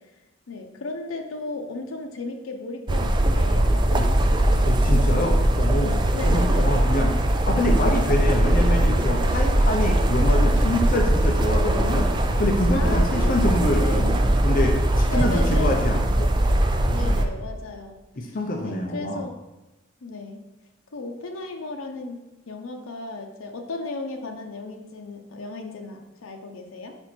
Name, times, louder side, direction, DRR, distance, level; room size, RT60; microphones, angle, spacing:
voice 1, 0.5-4.7 6.1-6.7 12.7-14.2 15.1-15.8 16.8-18.4 18.6-19.4 20.0-20.4 20.9-22.2 22.5-26.9, left 3 dB, 85° left, 3 dB, 0.7 m, -35 dB
sound 1, 2.9-17.2, right 1 dB, 20° right, 0.4 m, -20 dB
voice 2, 4.6-7.1 7.5-12.1 12.4-16.3 17.0-17.2 18.2-19.2, left 1 dB, 45° left, 0 dB, 0.6 m, -26 dB
5.2 x 4.4 x 4.3 m, 1.0 s
head